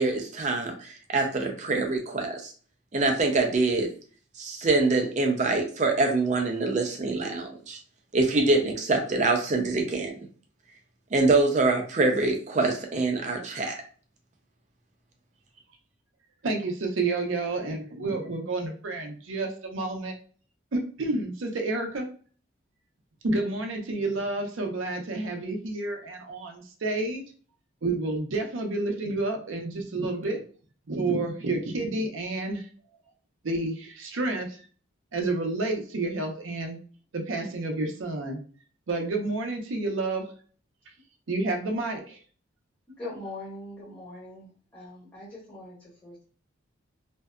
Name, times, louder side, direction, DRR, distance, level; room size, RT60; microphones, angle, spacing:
voice 1, 0.0-2.5 2.9-3.9 4.4-7.8 8.1-10.1 11.1-13.8, right 3 dB, 35° right, 3 dB, 0.5 m, -25 dB
voice 2, 16.4-20.1 20.7-22.1 23.2-27.2 27.8-30.4 30.9-32.7 33.4-34.6 35.1-36.8 37.1-38.4 38.9-40.2 41.3-42.2, right 2 dB, 85° right, 3 dB, 0.6 m, -29 dB
voice 3, 42.9-46.2, left 2 dB, 15° left, -10 dB, 0.9 m, -42 dB
2.6 x 2.3 x 2.2 m, 0.42 s
head